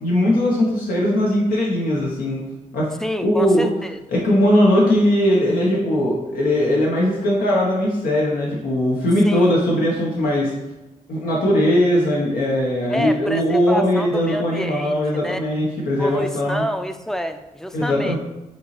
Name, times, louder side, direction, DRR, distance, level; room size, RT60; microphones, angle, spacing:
voice 1, 0.0-2.4 2.7-2.9 3.2-3.7 4.1-10.5 11.1-16.6 17.7-18.2, left 1 dB, 85° left, -4 dB, 0.7 m, -19 dB
voice 2, 3.0-4.0 4.7-4.9 9.2-9.6 12.9-15.4 16.0-18.2, equal, 5° left, 8 dB, 0.3 m, -28 dB
5.2 x 2.9 x 3.0 m, 0.98 s
cardioid pair, 65°, 15 cm